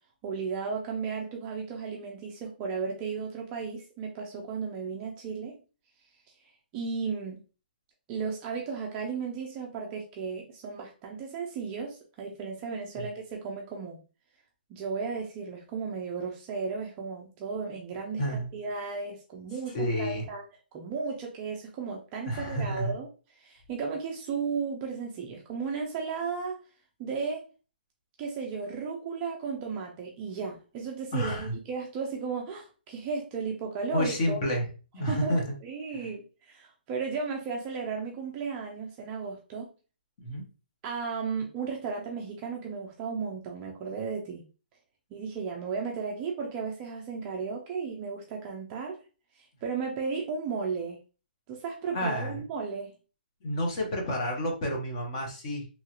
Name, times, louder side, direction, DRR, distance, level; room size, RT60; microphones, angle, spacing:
voice 1, 0.2-5.6 6.7-7.4 8.1-14.0 14.7-20.4 20.7-23.1 23.4-26.6 27.0-27.5 28.2-34.4 35.1-39.7 40.8-44.4 45.1-49.0 49.3-51.0 51.5-52.9, right 5 dB, 15° right, 0 dB, 0.4 m, -34 dB
voice 2, 18.2-18.5 19.7-20.2 22.3-22.9 31.1-31.5 33.9-34.7 34.9-35.5 35.9-36.1 40.2-40.4 51.9-52.4 53.4-55.7, equal, 30° left, 2 dB, 0.8 m, -30 dB
3.0 x 2.3 x 2.8 m, 0.35 s
hypercardioid pair, 170°, 6 cm